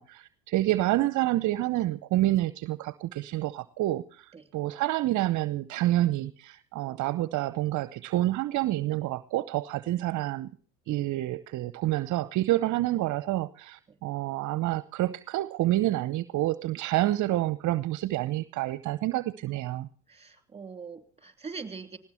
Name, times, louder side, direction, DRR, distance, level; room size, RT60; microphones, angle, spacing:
voice 1, 0.0-10.5 10.9-19.9, right 16 dB, 45° right, 17 dB, 0.8 m, -28 dB
voice 2, 20.1-22.0, right 5 dB, 15° right, 8 dB, 3.2 m, -42 dB
19.0 x 17.0 x 4.4 m, 0.43 s
hypercardioid pair, 80°, 40 cm